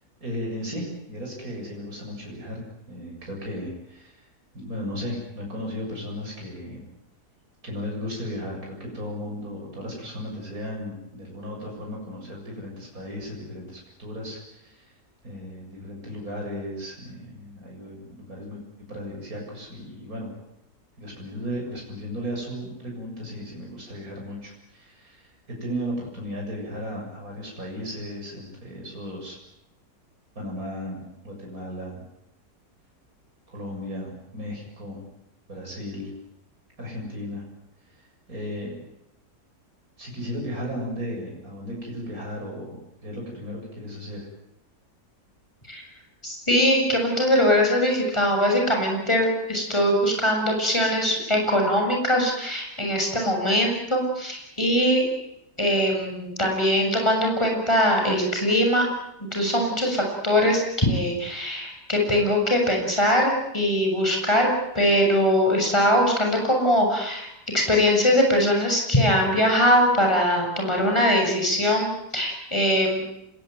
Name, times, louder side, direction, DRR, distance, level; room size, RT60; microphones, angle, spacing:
voice 1, 0.2-4.3 4.5-6.8 7.6-14.9 15.2-18.6 18.9-20.3 21.0-29.3 30.4-32.0 33.5-35.1 35.5-36.1 36.8-37.4 37.9-38.7 40.0-42.8 43.0-44.2, equal, 60° right, -1 dB, 8.0 m, -35 dB
voice 2, 46.2-55.0 55.6-58.9 59.2-67.3 67.5-73.0, equal, 15° left, 1 dB, 7.3 m, -22 dB
26.5 x 22.0 x 9.3 m, 0.81 s
omnidirectional pair, 1.7 m